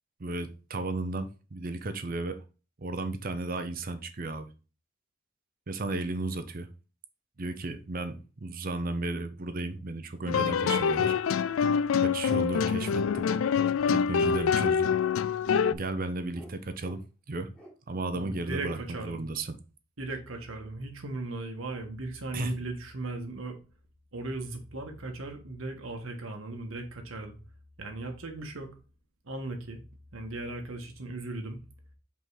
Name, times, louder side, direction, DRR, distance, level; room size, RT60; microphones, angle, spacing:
voice 1, 0.2-2.4 2.8-4.5 5.7-6.7 7.4-11.2 12.0-13.2 13.9-14.9 15.7-17.0 17.3-17.5 17.9-19.6 22.3-22.5, right 2 dB, 45° right, 0.6 m, -34 dB
sound 1, 10.3-15.7, left 6 dB, 75° left, 0.3 m, -25 dB
sound 2, 12.3-13.3 13.8-14.0 14.6-14.8 15.6-15.7 16.3-16.5 16.8-17.0 17.5-17.7 18.6-18.8, right 1 dB, 5° left, 1.5 m, -48 dB
voice 2, 18.1-19.2 20.0-23.6 24.1-27.4 27.8-28.7 29.2-29.8 30.1-31.6, right 2 dB, 75° right, 1.4 m, -37 dB
5.4 x 3.8 x 4.8 m
head